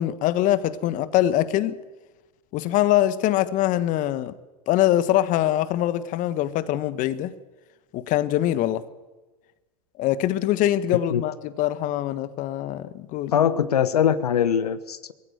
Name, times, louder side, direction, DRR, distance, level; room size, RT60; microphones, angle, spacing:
voice 1, 0.0-1.8 2.5-4.3 4.7-7.3 7.9-8.8 10.0-13.3, left 13 dB, 40° left, 1.4 m, -23 dB
voice 2, 13.3-15.1, left 9 dB, 80° left, 1.1 m, -22 dB
21.5 x 15.5 x 9.5 m
hypercardioid pair, 95°, 20 cm